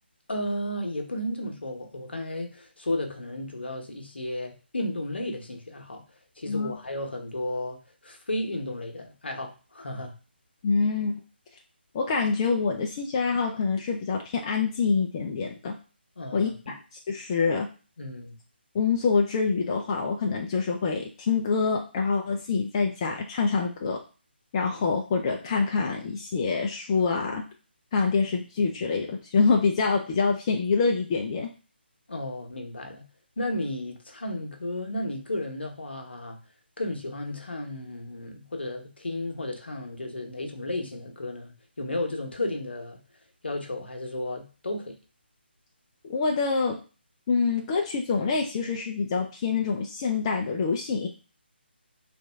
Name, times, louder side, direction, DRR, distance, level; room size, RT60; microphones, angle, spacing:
voice 1, 0.3-6.0 6.4-10.1 16.2-16.7 18.0-18.4 32.1-33.1 33.4-36.4 36.8-43.0 43.4-44.9, left 1 dB, 70° left, 3 dB, 0.9 m, -33 dB
voice 2, 10.6-11.1 11.9-15.7 16.3-16.5 17.1-17.7 18.7-24.0 24.5-27.4 27.9-31.5 46.0-46.8 47.3-51.1, left 4 dB, 25° left, 1 dB, 0.4 m, -26 dB
3.1 x 2.5 x 3.3 m, 0.34 s
figure-of-eight pair, 150°, 6 cm